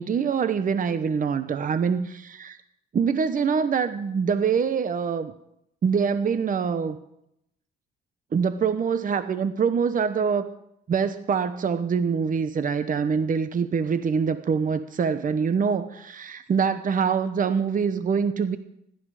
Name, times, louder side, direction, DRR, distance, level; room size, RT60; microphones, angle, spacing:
voice 1, 0.0-2.6 2.9-5.3 5.8-7.0 8.3-10.5 10.9-18.6, right 6 dB, 45° right, 12 dB, 1.0 m, -24 dB
17.5 x 12.5 x 5.0 m, 0.79 s
cardioid pair, 90°, 20 cm